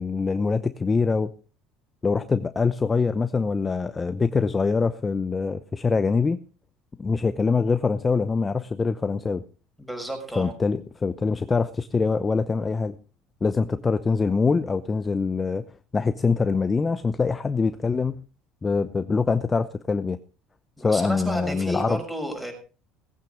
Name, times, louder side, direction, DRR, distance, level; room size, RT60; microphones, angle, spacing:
voice 1, 0.0-1.3 2.0-6.4 7.0-9.4 10.4-13.0 13.4-15.6 15.9-18.2 18.6-20.2 20.8-22.0, left 4 dB, 20° left, 12 dB, 0.7 m, -24 dB
voice 2, 9.8-10.5 20.8-22.5, right 1 dB, 5° right, 4 dB, 6.1 m, -32 dB
18.5 x 9.1 x 5.0 m, 0.35 s
cardioid pair, 130°, 0 cm